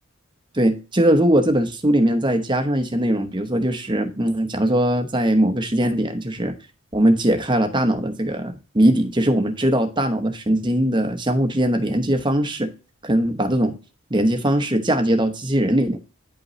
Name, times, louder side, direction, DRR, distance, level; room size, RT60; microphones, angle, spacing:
voice 1, 0.5-6.5 6.9-12.7 13.0-13.8 14.1-16.0, right 1 dB, 20° right, 7 dB, 1.0 m, -20 dB
9.9 x 5.3 x 3.1 m, 0.33 s
head